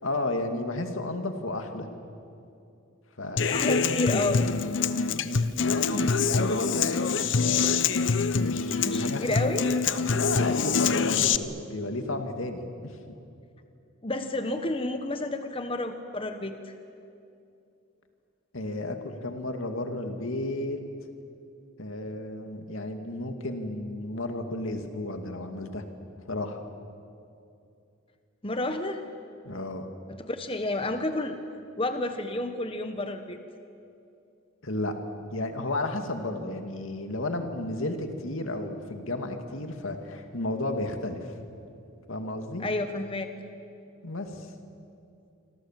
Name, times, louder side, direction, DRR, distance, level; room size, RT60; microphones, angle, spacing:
voice 1, 0.0-1.9 3.2-4.3 5.1-7.7 8.3-9.2 10.1-13.0 18.5-20.8 21.8-25.8 26.3-26.6 29.4-29.9 34.6-35.0 35.3-41.3 42.1-42.6 44.0-44.5, left 2 dB, 80° left, 5 dB, 2.4 m, -32 dB
Human voice / Acoustic guitar, 3.4-11.4, left 5 dB, 65° left, 0.8 m, -25 dB
voice 2, 3.5-4.4 8.8-9.6 14.0-16.5 28.4-29.0 30.1-31.4 31.8-33.4 42.6-43.3, left 2 dB, 25° left, 7 dB, 1.1 m, -30 dB
27.0 x 26.0 x 7.5 m, 2.6 s
head